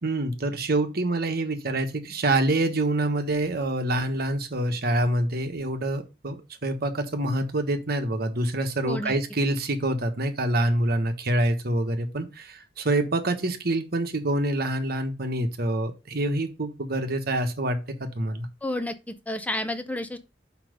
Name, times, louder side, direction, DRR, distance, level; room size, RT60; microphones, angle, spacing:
voice 1, 0.0-18.5, right 1 dB, 55° right, 1.3 m, -26 dB
voice 2, 8.8-9.1 18.6-20.2, left 1 dB, 10° left, 0.6 m, -31 dB
5.9 x 5.3 x 6.5 m
head